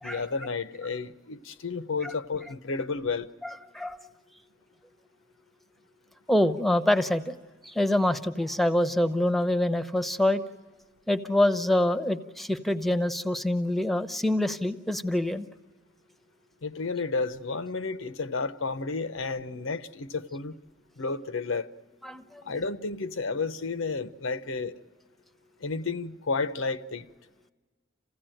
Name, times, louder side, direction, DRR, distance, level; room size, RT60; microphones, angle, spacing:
voice 1, 0.0-3.3 16.6-20.6 21.0-21.7 22.4-24.7 25.6-27.1, left 4 dB, 85° left, 0.8 m, -31 dB
voice 2, 3.4-4.0 6.3-7.3 7.6-10.4 11.1-15.5 22.0-22.6, left 1 dB, ahead, 0.8 m, -26 dB
27.5 x 16.0 x 9.0 m
head